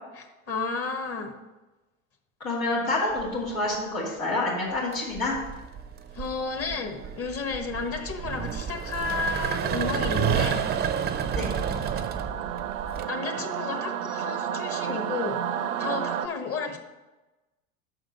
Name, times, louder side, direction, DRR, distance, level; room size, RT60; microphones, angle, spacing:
voice 1, 0.2-1.4 6.1-10.6 13.1-15.4 15.8-16.8, left 4 dB, 35° left, 5 dB, 1.2 m, -32 dB
voice 2, 2.4-5.3 11.3-11.5, left 2 dB, 85° left, -6 dB, 2.6 m, -28 dB
sound 1, 3.2-3.6 4.8-13.0, right 8 dB, 25° right, 0.5 m, -30 dB
Singing / Musical instrument, 9.1-16.3, right 9 dB, 65° right, 0.6 m, -33 dB
6.1 x 5.1 x 6.6 m, 1.1 s
hypercardioid pair, 75°, 40 cm